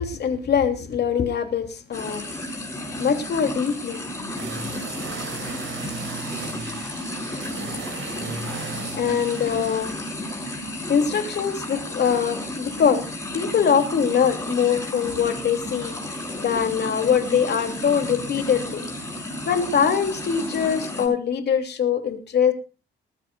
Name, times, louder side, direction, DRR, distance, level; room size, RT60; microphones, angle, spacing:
voice 1, 0.0-2.2 3.0-4.0 9.0-9.9 10.9-13.0 13.3-15.9 16.4-18.9 19.4-22.5, left 7 dB, 55° left, 6 dB, 2.8 m, -23 dB
sound 1, 1.9-21.1, left 1 dB, 15° left, 6.8 m, -32 dB
sound 2, 4.4-9.9, right 5 dB, 75° right, 5.4 m, -36 dB
20.5 x 14.5 x 2.4 m, 0.32 s
cardioid pair, 90°, 20 cm